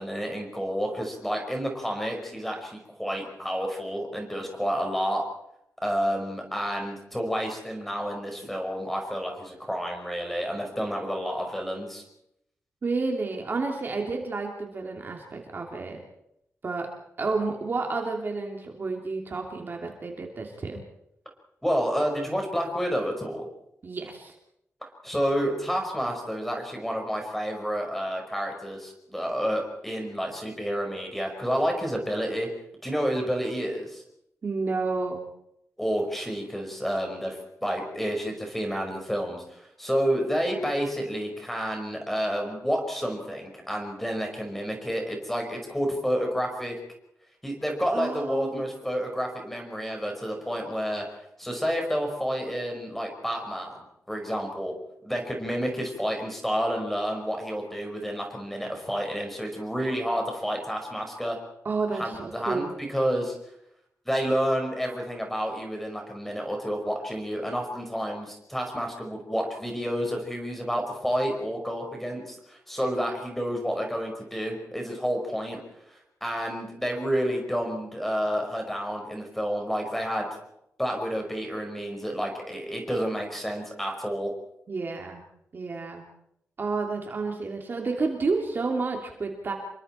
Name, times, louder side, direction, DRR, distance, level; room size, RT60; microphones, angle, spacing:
voice 1, 0.0-5.2 5.8-12.0 21.6-23.5 25.0-32.5 32.8-34.0 35.8-46.8 47.4-51.0 51.4-53.8 54.1-54.7 55.0-61.4 61.9-63.4 64.0-75.6 75.9-80.3 80.8-84.3, equal, 5° left, 2 dB, 5.1 m, -30 dB
voice 2, 12.8-16.0 16.6-16.9 17.2-20.8 23.8-24.3 34.4-35.2 47.9-48.6 61.6-62.8 84.7-85.2 85.5-86.1 86.6-89.5, right 3 dB, 40° right, 1 dB, 2.9 m, -30 dB
28.0 x 23.5 x 4.5 m, 0.77 s
wide cardioid pair, 175°, 5 cm